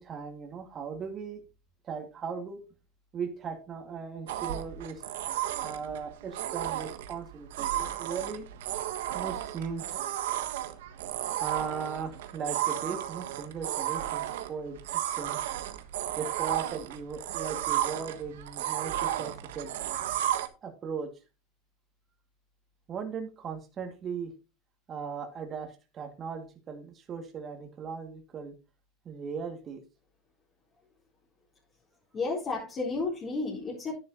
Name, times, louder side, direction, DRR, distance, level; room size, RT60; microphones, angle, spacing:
voice 1, 0.0-1.4 1.8-2.6 3.1-5.0 5.6-8.5 9.1-10.0 11.4-15.4 16.2-19.7 20.6-21.1 22.9-24.3 24.9-28.5 29.0-29.8, right 5 dB, 35° right, 2.3 m, -38 dB
sound 1, 4.3-20.5, right 12 dB, 90° right, 1.3 m, -33 dB
voice 2, 32.1-34.0, left 3 dB, 30° left, 4.4 m, -32 dB
11.0 x 10.5 x 3.0 m
supercardioid pair, 125°, 0 cm